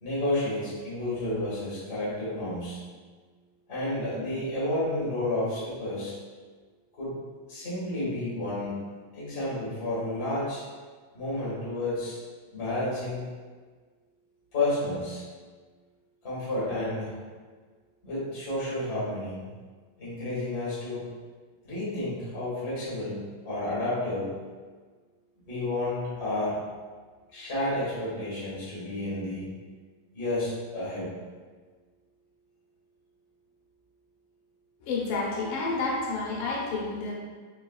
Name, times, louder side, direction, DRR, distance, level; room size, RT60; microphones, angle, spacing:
voice 1, 0.0-2.8 3.7-6.1 7.0-7.1 7.5-8.7 9.1-10.6 11.1-12.2 12.5-13.2 14.5-15.2 16.2-17.1 18.0-19.5 20.0-21.1 21.6-23.2 23.4-24.3 25.5-26.6 27.3-29.5 30.1-31.1, left 1 dB, 60° left, -10 dB, 0.7 m, -31 dB
voice 2, 34.8-37.1, left 3 dB, 75° left, -4 dB, 2.4 m, -30 dB
5.6 x 3.8 x 2.3 m, 1.5 s
omnidirectional pair, 4.0 m